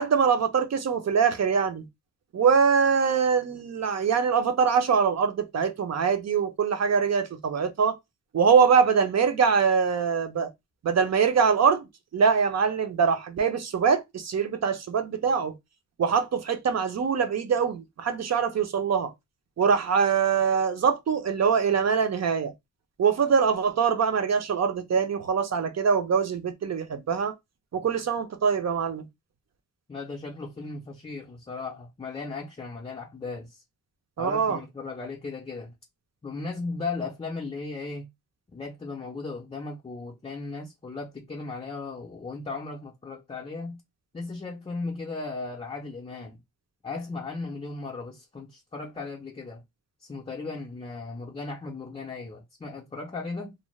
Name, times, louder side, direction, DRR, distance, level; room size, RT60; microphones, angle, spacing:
voice 1, 0.0-1.9 2.3-7.9 8.3-10.5 10.8-11.8 12.1-15.5 16.0-19.1 19.6-22.5 23.0-27.3 27.7-29.1 34.2-34.6, right 6 dB, 50° right, 0.6 m, -23 dB
voice 2, 29.9-33.6 34.2-35.7 36.2-38.1 38.5-43.8 44.1-46.4 46.8-49.6 50.0-53.6, left 3 dB, 20° left, 0.5 m, -36 dB
2.5 x 2.1 x 3.0 m
wide cardioid pair, 105°, 33 cm